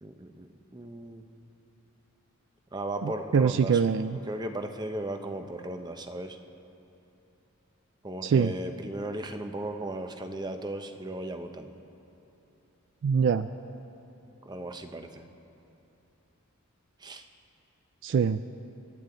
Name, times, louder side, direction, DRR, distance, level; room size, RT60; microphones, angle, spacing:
voice 1, 0.0-1.2 2.7-3.8 4.3-6.4 8.0-11.7 14.4-15.2 17.0-17.2, right 1 dB, 20° right, 6 dB, 0.7 m, -36 dB
voice 2, 3.0-4.2 8.2-8.5 13.0-13.5 18.0-18.4, right 6 dB, 55° right, 12 dB, 0.3 m, -24 dB
27.5 x 12.0 x 3.9 m, 2.9 s
head